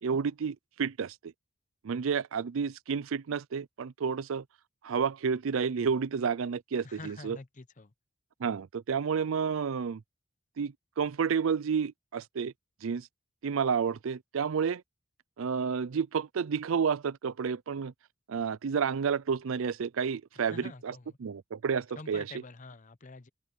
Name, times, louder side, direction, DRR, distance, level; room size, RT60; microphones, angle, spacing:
voice 1, 0.0-1.3 1.8-4.4 4.8-7.4 8.4-10.0 10.6-12.5 12.8-13.1 13.4-14.8 15.4-17.9 18.3-20.9 21.2-22.3, right 6 dB, 70° right, 0.4 m, -30 dB
voice 2, 6.8-7.9 20.3-21.2 21.9-23.3, left 3 dB, 35° left, 0.8 m, -47 dB
open air
head